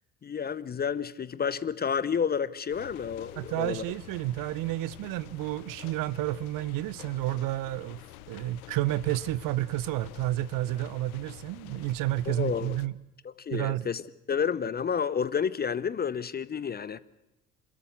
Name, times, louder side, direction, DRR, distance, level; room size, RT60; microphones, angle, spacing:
voice 1, 0.2-3.8 12.3-12.8 13.2-14.0 14.3-17.0, left 7 dB, 20° left, 0.7 m, -30 dB
sound 1, 2.7-12.9, left 16 dB, 65° left, 0.9 m, -48 dB
voice 2, 3.4-8.0 8.3-13.0 13.5-13.9, right 15 dB, 45° right, 0.7 m, -30 dB
26.5 x 13.5 x 8.3 m
figure-of-eight pair, 55°, 45 cm